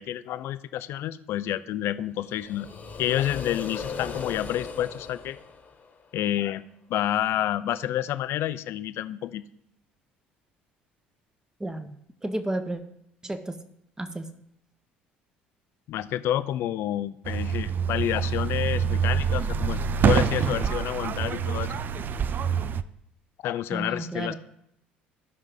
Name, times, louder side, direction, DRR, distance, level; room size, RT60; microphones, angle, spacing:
voice 1, 0.0-2.7 3.0-5.4 6.1-6.6 6.9-9.4 15.9-21.7 23.4-24.3, left 12 dB, 50° left, 15 dB, 0.5 m, -29 dB
sound 1, 2.2-6.2, left 5 dB, 35° left, 1.5 m, -37 dB
voice 2, 11.6-12.0 12.2-12.8 13.2-13.6 14.0-14.3 23.7-24.3, right 1 dB, 10° right, 9 dB, 1.1 m, -32 dB
sound 2, 17.2-22.8, right 7 dB, 40° right, 0.5 m, -26 dB
15.5 x 5.8 x 3.8 m, 0.74 s
figure-of-eight pair, 55°, 5 cm